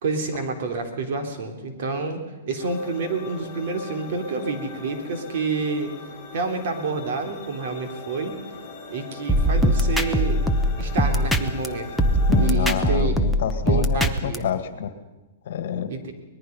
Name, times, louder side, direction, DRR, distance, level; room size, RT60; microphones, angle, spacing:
voice 1, 0.0-5.9 6.3-8.4 8.9-10.4 10.8-11.9 12.4-13.1 13.7-14.5 15.9-16.1, right 4 dB, 55° right, 5 dB, 3.6 m, -28 dB
sound 1, 2.6-12.5, left 3 dB, 15° left, 5.5 m, -40 dB
sound 2, 9.3-11.7 12.0-14.4, equal, ahead, 0.9 m, -21 dB
voice 2, 12.3-14.9 15.5-15.9, left 8 dB, 60° left, 10 dB, 1.9 m, -28 dB
25.0 x 20.0 x 5.5 m, 1.1 s
hypercardioid pair, 160°, 0 cm